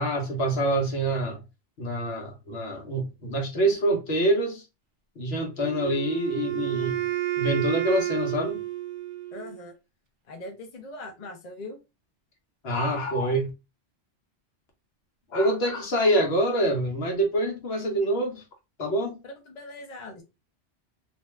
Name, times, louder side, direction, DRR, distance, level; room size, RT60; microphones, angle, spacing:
voice 1, 0.0-1.4 1.8-4.6 5.2-7.0 7.4-8.6 12.6-13.5 15.3-18.4 18.8-19.2, right 1 dB, 60° left, 1.1 m, -26 dB
Wind instrument woodwind instrument, 5.6-9.6, right 14 dB, 55° right, 0.6 m, -30 dB
voice 2, 9.3-9.7 10.3-11.8 19.2-20.2, left 2 dB, 45° left, 0.7 m, -41 dB
2.5 x 2.4 x 3.1 m
omnidirectional pair, 1.2 m